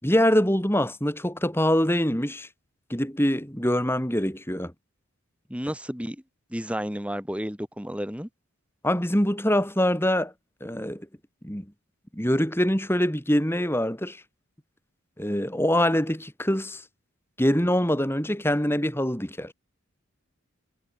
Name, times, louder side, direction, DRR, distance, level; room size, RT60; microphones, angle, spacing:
voice 1, 0.0-2.5 2.9-4.7 8.8-10.3 10.6-11.1 11.4-11.7 12.1-14.2 15.2-16.8 17.4-19.5, equal, 10° left, 5.2 m, -24 dB
voice 2, 5.5-6.2 6.5-8.3, equal, 5° right, 4.3 m, -31 dB
head